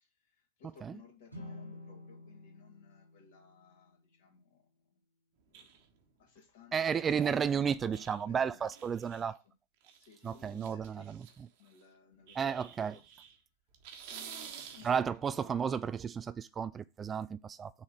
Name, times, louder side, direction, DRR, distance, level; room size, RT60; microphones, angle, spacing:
voice 1, 0.0-5.0 5.5-5.7 6.2-9.5 10.0-11.1 11.6-13.0 14.1-15.7, left 6 dB, 55° left, 2.7 m, -59 dB
sound 1, 1.3-4.5, left 2 dB, 90° left, 2.1 m, -50 dB
sound 2, 5.5-6.0 6.9-7.4 7.9-8.2 8.6-9.4 9.8-11.8 12.3-13.4 13.7-15.1, right 8 dB, 50° right, 1.5 m, -50 dB
voice 2, 6.7-9.4 10.2-11.2 12.4-13.0 14.8-17.7, right 7 dB, 20° right, 0.3 m, -33 dB
6.7 x 3.9 x 6.4 m
figure-of-eight pair, 90°, 0 cm